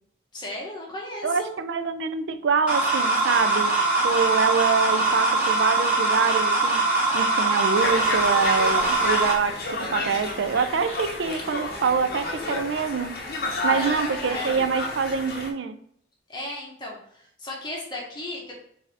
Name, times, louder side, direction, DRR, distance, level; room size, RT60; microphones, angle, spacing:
voice 1, 0.3-1.5 13.6-14.6 16.3-18.5, left 1 dB, 25° left, -3 dB, 1.1 m, -35 dB
voice 2, 1.2-6.8 7.1-13.1 13.6-15.8, right 5 dB, 85° right, 10 dB, 0.4 m, -25 dB
sound 1, 2.7-9.3, right 3 dB, 10° right, 1.7 m, -22 dB
Conversation, 7.7-15.5, left 2 dB, 55° left, 0.7 m, -31 dB
4.5 x 2.7 x 3.4 m, 0.68 s
head